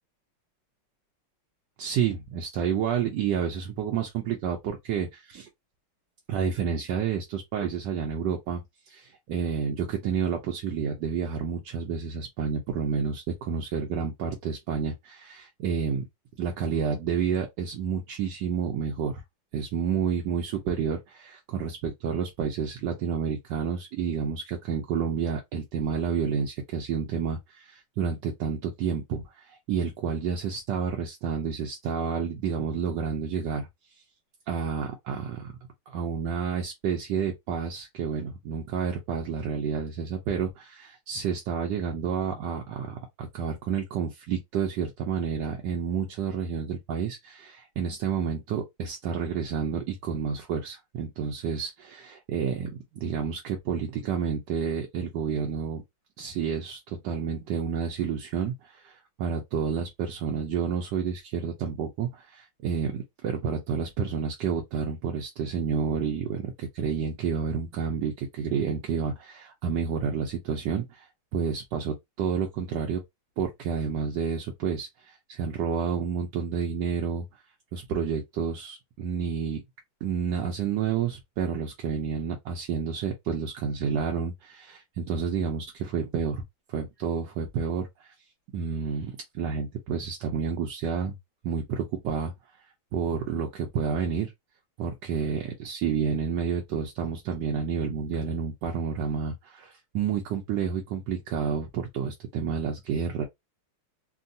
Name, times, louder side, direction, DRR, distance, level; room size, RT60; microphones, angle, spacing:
voice 1, 1.8-5.5 6.3-8.6 8.9-16.0 16.4-19.2 19.5-33.7 34.5-35.5 35.9-55.8 56.2-71.1 71.3-73.0 73.4-77.2 77.7-79.6 80.0-86.4 86.7-88.1 88.5-91.1 91.4-92.3 92.9-94.3 94.8-103.2, right 7 dB, 70° right, 1.1 m, -30 dB
3.5 x 2.2 x 2.6 m
omnidirectional pair, 2.3 m